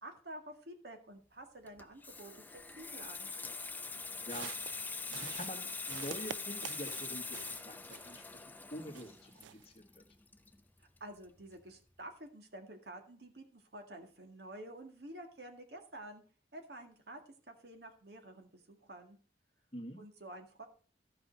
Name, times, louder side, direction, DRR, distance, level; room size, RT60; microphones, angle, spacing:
voice 1, 0.0-3.3 10.8-16.2 16.5-17.2 17.5-19.2 20.0-20.7, right 1 dB, 65° right, 5 dB, 1.9 m, -50 dB
Water tap faucet / Sink (filling or washing), 1.7-11.0 11.3-11.5, left 4 dB, 10° left, 0.5 m, -43 dB
sound 1, 4.2-8.4 8.7-9.7, right 9 dB, 90° right, 0.4 m, -48 dB
voice 2, 5.1-10.0 19.7-20.0, equal, 30° left, 5 dB, 1.6 m, -46 dB
14.0 x 5.6 x 5.2 m, 0.40 s
head